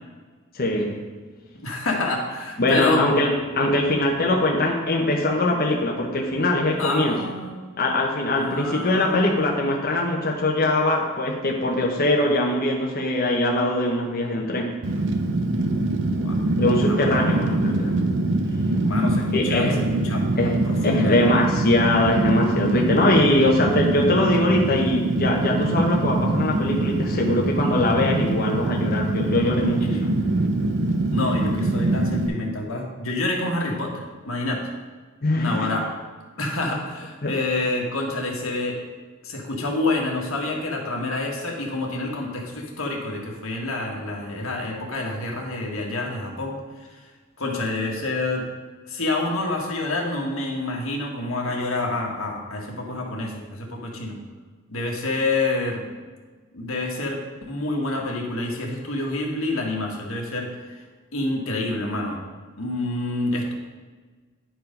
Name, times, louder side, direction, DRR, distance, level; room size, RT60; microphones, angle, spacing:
voice 1, 0.5-1.0 2.6-7.2 7.8-14.8 16.6-17.9 19.3-19.8 20.4-30.1 35.2-35.7 37.2-37.3, left 1 dB, 45° left, -1 dB, 0.9 m, -22 dB
voice 2, 1.6-3.0 6.8-7.6 8.4-9.6 15.7-16.4 16.8-17.3 18.8-19.8 20.0-20.3 20.6-21.2 29.8-30.0 31.1-34.7 35.3-35.9 36.4-38.8 39.2-47.0 47.4-48.5 48.8-54.2 54.7-55.8 56.5-57.2 57.5-60.8 61.1-62.2 62.6-63.5, left 2 dB, 90° left, -1 dB, 1.7 m, -28 dB
Fire, 14.8-32.3, right 2 dB, 65° right, 0.7 m, -24 dB
10.5 x 4.8 x 5.2 m, 1.4 s
head